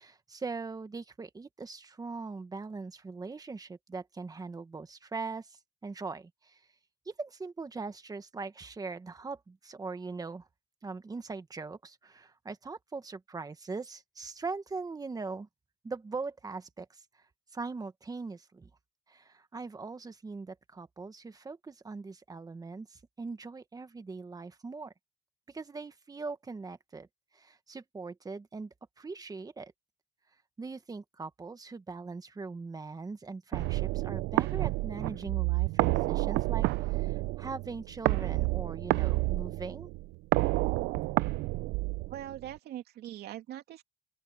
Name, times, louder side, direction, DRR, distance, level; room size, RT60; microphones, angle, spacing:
voice 1, 0.0-6.6 7.0-10.5 10.8-15.5 15.8-17.0 17.5-18.7 19.1-24.9 25.5-27.1 27.3-29.7 30.6-39.9, right 4 dB, 20° right, 1.6 m, -41 dB
sound 1, 33.5-42.5, right 20 dB, 90° right, 0.5 m, -29 dB
voice 2, 42.1-43.8, right 12 dB, 70° right, 2.9 m, -42 dB
open air
cardioid pair, 110°, 17 cm